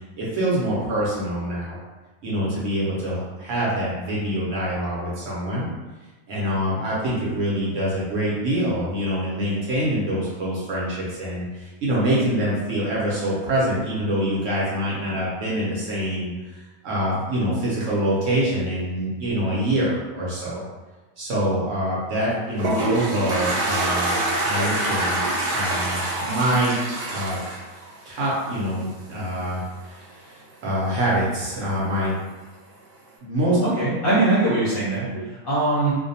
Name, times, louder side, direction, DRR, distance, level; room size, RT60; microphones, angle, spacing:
voice 1, 0.2-1.8 2.2-5.7 6.3-20.6 21.2-24.1 24.4-25.2 25.5-26.8 27.1-27.4 28.0-32.1 33.2-33.6 35.1-35.2, right 1 dB, 65° right, -7 dB, 0.9 m, -25 dB
Toilet flush, 22.2-28.6, right 1 dB, 85° right, 1.2 m, -25 dB
voice 2, 33.6-35.9, right 2 dB, 50° left, -10 dB, 0.7 m, -22 dB
2.5 x 2.1 x 2.6 m, 1.2 s
omnidirectional pair, 1.6 m